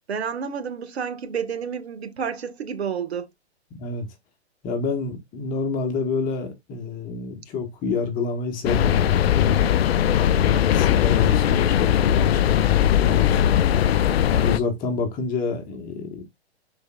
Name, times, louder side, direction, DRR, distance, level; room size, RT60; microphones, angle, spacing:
voice 1, 0.1-3.3, right 7 dB, 70° right, 1.6 m, -30 dB
voice 2, 4.6-9.6 10.4-13.6 14.3-16.2, left 4 dB, 25° left, 1.4 m, -28 dB
sound 1, 8.6-14.6, left 10 dB, 65° left, 0.5 m, -19 dB
10.5 x 4.4 x 2.4 m
hypercardioid pair, 125°, 33 cm